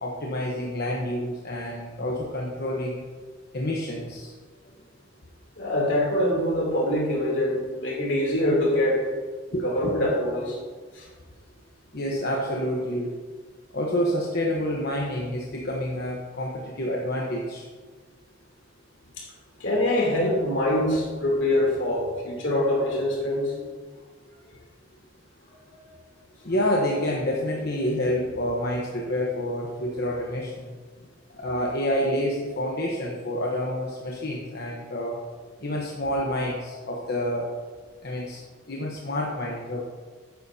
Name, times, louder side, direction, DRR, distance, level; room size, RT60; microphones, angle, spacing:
voice 1, 0.0-3.0 3.5-4.3 9.5-9.9 11.9-13.1 13.7-17.7 26.4-30.7 31.3-35.2 35.6-37.5 38.0-38.4 38.7-39.9, left 1 dB, 55° left, -2 dB, 1.1 m, -28 dB
voice 2, 5.6-9.0 9.5-10.6 10.9-11.1 19.2-19.3 19.6-23.6, left 1 dB, 75° left, -2 dB, 3.1 m, -24 dB
12.0 x 9.3 x 2.8 m, 1.4 s
head